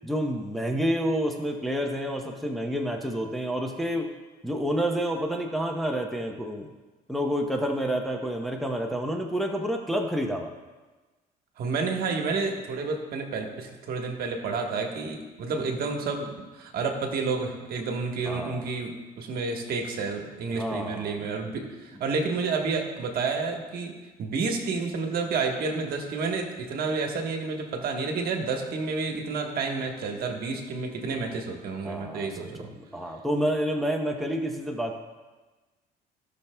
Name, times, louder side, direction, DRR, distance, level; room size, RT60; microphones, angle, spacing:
voice 1, 0.0-4.1 4.4-6.7 7.1-10.5 18.3-18.6 20.6-21.2 31.8-35.0, equal, ahead, 1 dB, 0.8 m, -29 dB
voice 2, 11.6-32.7, right 4 dB, 65° right, 3 dB, 1.3 m, -30 dB
17.0 x 5.9 x 2.2 m, 1.2 s
cardioid pair, 110°, 17 cm